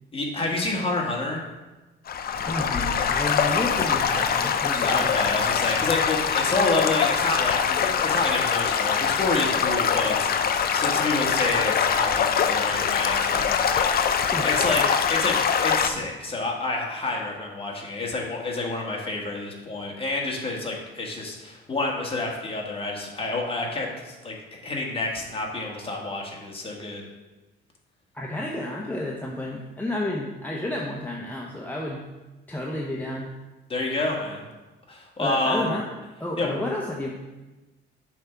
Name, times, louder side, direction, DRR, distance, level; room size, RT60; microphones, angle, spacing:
voice 1, 0.1-1.4 4.8-14.8 15.1-24.4 24.6-27.0 33.7-34.5 34.9-35.8 36.4-36.6, left 2 dB, 30° left, -1 dB, 1.6 m, -28 dB
Stream / Gurgling / Trickle dribble, 2.1-15.9, left 7 dB, 50° left, 0.5 m, -23 dB
voice 2, 2.4-5.1 14.3-14.5 28.1-32.0 32.5-33.3 35.2-35.8 36.2-37.1, left 1 dB, 10° left, -3 dB, 0.8 m, -31 dB
7.1 x 3.5 x 5.7 m, 1.1 s
cardioid pair, 90°, 20 cm